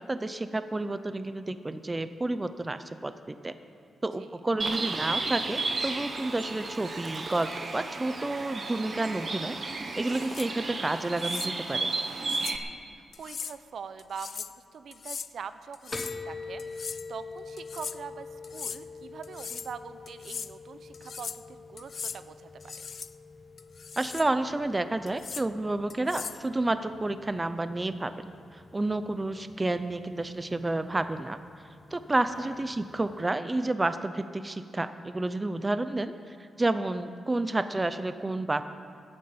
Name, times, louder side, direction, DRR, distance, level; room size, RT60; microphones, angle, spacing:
voice 1, 0.0-3.5 4.0-11.9 24.0-28.1 28.5-31.4 31.9-38.6, right 2 dB, 15° right, 11 dB, 0.5 m, -30 dB
Bird, 4.6-12.6, right 3 dB, 35° right, 1.1 m, -33 dB
sound 1, 10.0-10.5 11.2-11.5 12.3-12.6 13.1-13.6 14.0-14.6 14.9-15.3 15.7-16.2 16.6-17.1 17.6-18.0 18.4-18.8 19.2-19.7 20.1-20.5 20.9-21.4 21.8-22.2 22.6-23.1 23.6-24.3 25.1-25.5 25.9-26.4, left 6 dB, 45° left, 0.4 m, -39 dB
voice 2, 13.0-22.7 32.3-32.6, right 6 dB, 55° right, 12 dB, 0.6 m, -43 dB
sound 2, 15.9-33.3, left 3 dB, 15° left, 0.9 m, -46 dB
14.0 x 9.6 x 8.6 m, 2.5 s
wide cardioid pair, 145°, 0 cm